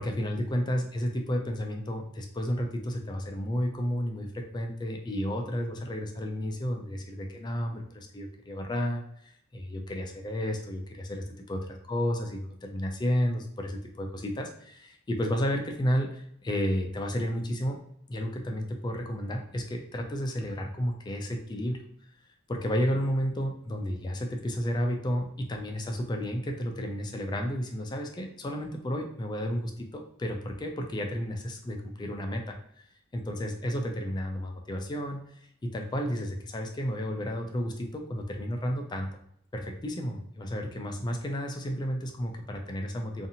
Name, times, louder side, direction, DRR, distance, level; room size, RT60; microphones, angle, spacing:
voice 1, 0.0-17.8 18.1-21.8 22.5-32.8 33.1-35.2 35.6-39.1 39.5-43.3, equal, 20° left, 3 dB, 0.3 m, -32 dB
2.6 x 2.4 x 2.8 m, 0.69 s
head